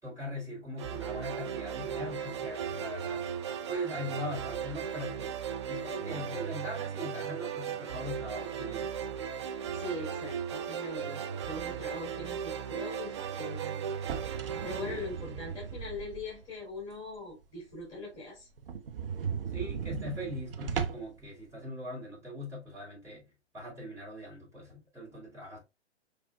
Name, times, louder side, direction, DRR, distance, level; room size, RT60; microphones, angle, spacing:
voice 1, 0.0-3.3 3.7-5.4 5.7-9.0 14.8-15.4 19.5-23.3 23.5-25.6, left 1 dB, 10° right, 2.8 m, -40 dB
sound 1, 0.8-16.0, right 8 dB, 25° right, 0.4 m, -37 dB
voice 2, 9.5-13.7 14.6-18.5, left 2 dB, 15° left, 2.8 m, -41 dB
sound 2, 13.9-16.5 16.9-17.0 17.4-17.5 17.8-17.9 18.1-18.2 18.6-21.2, right 7 dB, 55° right, 0.8 m, -37 dB
6.1 x 3.4 x 2.3 m
figure-of-eight pair, 120°, 34 cm